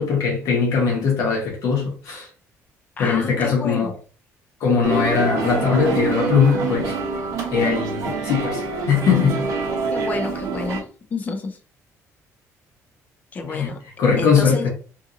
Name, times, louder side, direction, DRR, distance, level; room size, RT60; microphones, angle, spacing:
voice 1, 0.0-2.3 3.0-3.9 4.6-6.9 7.5-9.4 13.4-13.7 14.0-14.7, left 6 dB, 70° left, 1.0 m, -20 dB
voice 2, 3.0-3.9 5.0-5.2 9.9-10.8 11.1-11.6 13.3-13.8 14.2-14.7, left 4 dB, 30° left, 0.5 m, -29 dB
sound 1, 4.8-10.8, right 4 dB, 65° right, 0.8 m, -25 dB
2.8 x 2.7 x 2.5 m
cardioid pair, 160°, 6 cm